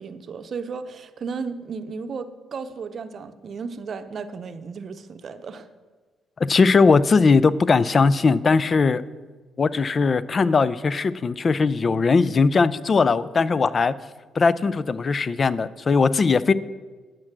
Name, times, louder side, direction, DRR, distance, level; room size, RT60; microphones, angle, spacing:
voice 1, 0.0-5.7, right 5 dB, 50° right, 10 dB, 0.7 m, -34 dB
voice 2, 6.4-9.0 9.6-13.9 14.4-16.5, left 4 dB, 40° left, 17 dB, 0.4 m, -19 dB
8.8 x 6.1 x 7.3 m, 1.4 s
cardioid pair, 90°, 0 cm